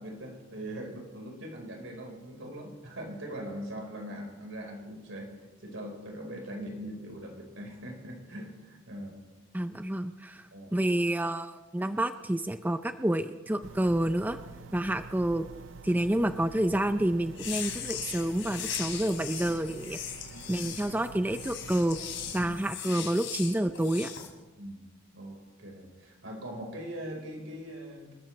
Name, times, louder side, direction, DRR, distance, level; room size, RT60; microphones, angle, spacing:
voice 1, 0.0-5.3 5.6-9.2 10.5-10.7 24.6-24.8 25.1-28.1, equal, 85° right, 1 dB, 4.4 m, -41 dB
voice 2, 9.5-10.4 10.7-14.4 14.7-15.5 15.8-20.0 20.5-22.0 22.3-24.1, right 1 dB, 10° right, 9 dB, 0.5 m, -28 dB
sound 1, 13.6-22.6, right 3 dB, 70° right, 0.6 m, -47 dB
sound 2, 17.3-24.3, left 8 dB, 80° left, 3.0 m, -39 dB
27.5 x 13.5 x 3.2 m, 1.1 s
head